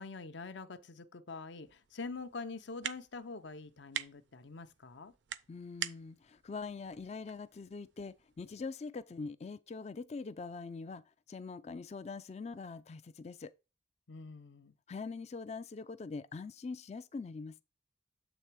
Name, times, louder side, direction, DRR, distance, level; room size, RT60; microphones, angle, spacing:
voice 1, 0.0-5.1 14.1-14.7, left 4 dB, 65° left, 0.7 m, -45 dB
sound 1, 1.6-8.4, right 9 dB, 65° right, 0.5 m, -46 dB
voice 2, 5.5-13.5 14.9-17.6, left 4 dB, 35° left, 0.3 m, -43 dB
7.9 x 3.4 x 4.5 m
head